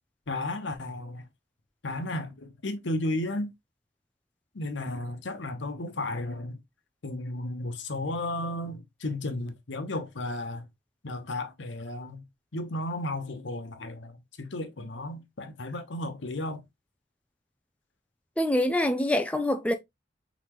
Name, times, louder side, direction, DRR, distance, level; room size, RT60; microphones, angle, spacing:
voice 1, 0.3-1.2 1.8-3.5 4.5-6.6 7.0-10.7 11.0-12.2 12.5-16.6, left 1 dB, 90° left, 0.9 m, -34 dB
voice 2, 18.4-19.8, left 1 dB, 5° left, 0.4 m, -25 dB
4.1 x 4.1 x 3.0 m
head